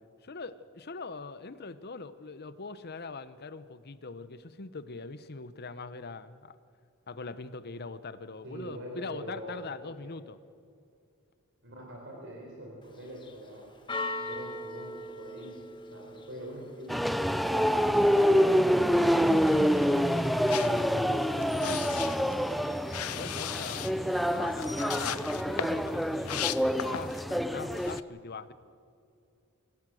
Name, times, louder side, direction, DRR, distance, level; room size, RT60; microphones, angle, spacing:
voice 1, 0.2-6.5 7.1-10.4 20.7-21.9 23.1-28.5, left 4 dB, 45° left, 14 dB, 0.8 m, -42 dB
voice 2, 8.4-9.6 9.8-10.1 11.6-13.7 14.2-15.6 15.9-17.0 17.4-19.3 23.5-23.9, right 1 dB, 55° right, -1 dB, 4.2 m, -44 dB
Church bell, 12.8-26.6, left 2 dB, 20° left, 1.6 m, -45 dB
sound 1, 16.9-28.0, equal, ahead, 0.4 m, -26 dB
sound 2, 20.4-27.3 27.7-28.0, left 10 dB, 85° left, 0.7 m, -38 dB
25.5 x 16.5 x 7.8 m, 2.5 s
head